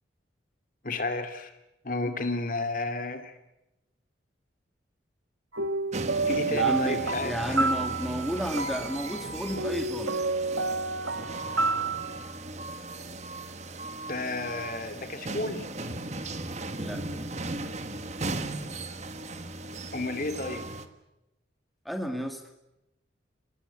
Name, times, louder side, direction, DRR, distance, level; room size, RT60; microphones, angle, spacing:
voice 1, 0.8-1.5 1.8-3.3 6.3-7.6 14.1-15.7 19.9-20.6, left 2 dB, 45° left, 8 dB, 2.4 m, -32 dB
sound 1, 5.5-12.2, right 3 dB, 80° right, 1.5 m, -30 dB
sound 2, 5.9-20.9, right 2 dB, 35° right, 1.5 m, -37 dB
voice 2, 6.5-10.2 16.8-17.0 21.9-22.4, equal, ahead, 4 dB, 2.2 m, -32 dB
29.0 x 19.5 x 8.4 m, 0.91 s
head